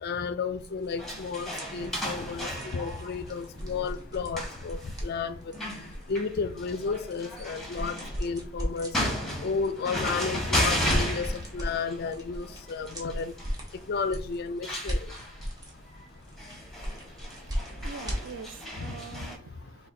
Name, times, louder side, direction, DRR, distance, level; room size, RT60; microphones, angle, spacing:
voice 1, 0.0-5.3 6.1-8.9 9.4-13.3 13.9-15.1 18.9-19.0, left 5 dB, 50° left, 0.4 m, -32 dB
sound 1, 0.6-18.7, equal, 20° right, 1.0 m, -39 dB
sound 2, 1.0-19.4, equal, ahead, 0.9 m, -35 dB
voice 2, 17.3-19.9, right 6 dB, 60° right, 0.4 m, -45 dB
4.2 x 2.3 x 3.8 m
head